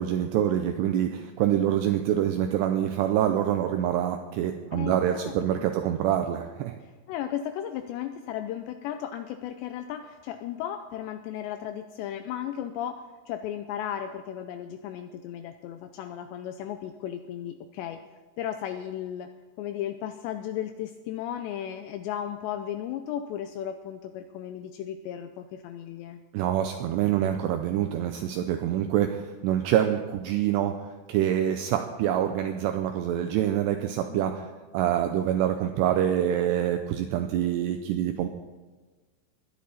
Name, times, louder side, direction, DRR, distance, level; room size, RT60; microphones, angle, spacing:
voice 1, 0.0-6.8 26.3-30.8 31.1-34.4 34.7-38.3, right 10 dB, 85° right, 6 dB, 2.4 m, -26 dB
voice 2, 4.7-5.7 7.1-18.0 18.4-19.3 19.6-26.2 34.1-34.5, left 10 dB, 85° left, 8 dB, 2.5 m, -35 dB
21.0 x 10.5 x 4.2 m, 1.3 s
omnidirectional pair, 5.6 m